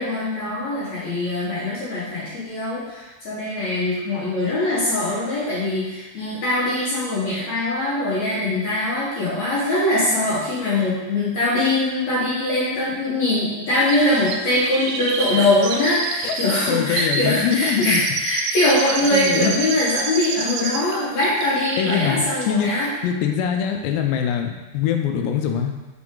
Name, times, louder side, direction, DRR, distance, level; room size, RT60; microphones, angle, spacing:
voice 1, 0.0-22.9, left 1 dB, 60° left, -8 dB, 2.0 m, -22 dB
Chirp tweet, 13.9-20.9 21.2-22.2 22.4-22.5, right 4 dB, 90° right, 2.1 m, -29 dB
voice 2, 16.7-18.0 19.1-19.5 21.8-22.7 23.0-25.7, left 8 dB, 85° left, 4 dB, 2.8 m, -23 dB
6.0 x 5.7 x 3.8 m, 1.1 s
omnidirectional pair, 4.8 m